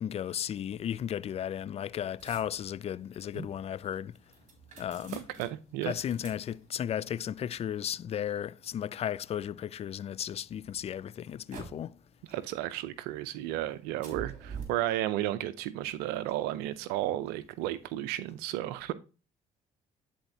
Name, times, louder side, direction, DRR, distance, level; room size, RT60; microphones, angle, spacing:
voice 1, 0.0-4.1 4.8-5.2 5.8-11.9, left 10 dB, 40° left, 0.4 m, -35 dB
sound 1, 0.7-9.9 10.4-12.0 12.3-13.1 13.4-14.6, right 6 dB, 50° right, 3.0 m, -49 dB
voice 2, 5.1-5.9 12.3-18.9, right 14 dB, 80° right, 0.6 m, -33 dB
10.5 x 4.3 x 2.7 m
supercardioid pair, 70°, 16 cm